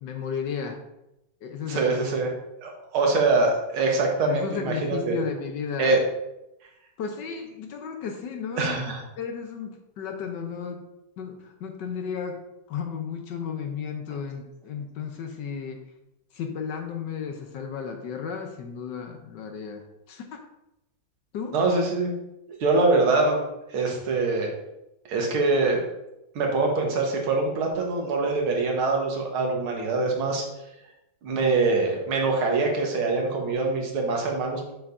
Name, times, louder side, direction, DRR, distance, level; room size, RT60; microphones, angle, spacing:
voice 1, 0.0-0.8 1.4-2.0 4.2-5.9 7.0-10.8 11.2-12.4 12.7-15.8 16.3-20.4 21.3-21.6, left 6 dB, 65° left, 4 dB, 1.2 m, -34 dB
voice 2, 1.7-2.3 2.6-5.2 5.8-6.0 8.6-9.0 21.5-22.1 22.6-23.4 23.7-24.5 25.1-25.8 26.4-30.4 31.2-34.7, right 3 dB, 90° right, 1 dB, 2.1 m, -24 dB
7.1 x 6.9 x 2.6 m, 0.89 s
omnidirectional pair, 2.3 m